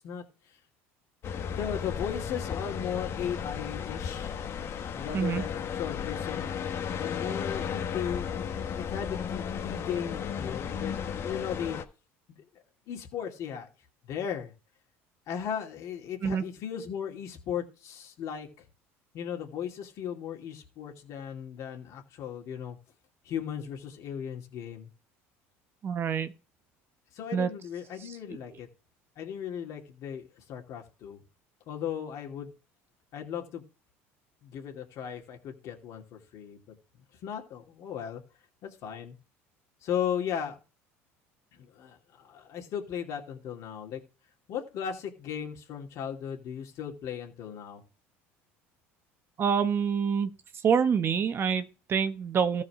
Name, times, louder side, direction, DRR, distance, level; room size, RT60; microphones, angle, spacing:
voice 1, 0.0-0.6 1.3-4.3 4.9-6.5 7.0-11.8 12.3-12.4 12.9-13.7 14.0-14.5 15.3-18.7 19.1-22.8 23.2-24.9 27.1-28.7 29.2-31.2 31.7-32.5 33.1-33.6 34.4-36.6 37.2-38.2 38.6-39.2 39.8-40.6 41.5-44.0 44.5-47.8, left 8 dB, 60° left, 2.7 m, -36 dB
sound 1, 1.2-11.8, left 7 dB, 45° left, 1.3 m, -34 dB
voice 2, 25.8-26.3 27.3-27.5 49.4-50.3 50.6-52.6, right 7 dB, 40° right, 1.0 m, -26 dB
14.0 x 4.8 x 4.8 m
supercardioid pair, 100°, 6 cm